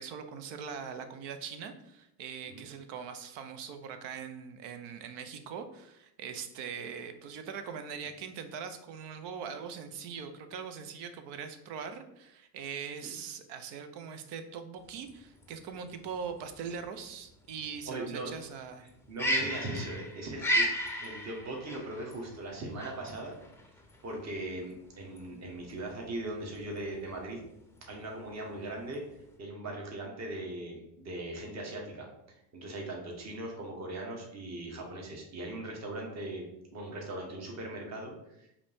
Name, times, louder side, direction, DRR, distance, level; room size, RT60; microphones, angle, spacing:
voice 1, 0.0-18.9, right 6 dB, 60° right, 8 dB, 0.7 m, -41 dB
sound 1, 14.8-29.4, equal, 5° left, 0.6 m, -36 dB
voice 2, 17.9-18.3 18.8-20.7 21.0-23.4 24.0-27.4 27.9-29.0 29.4-32.1 32.5-38.1 38.4-38.5, right 2 dB, 35° right, 0 dB, 1.3 m, -39 dB
4.8 x 2.8 x 3.5 m, 0.82 s
supercardioid pair, 95°, 48 cm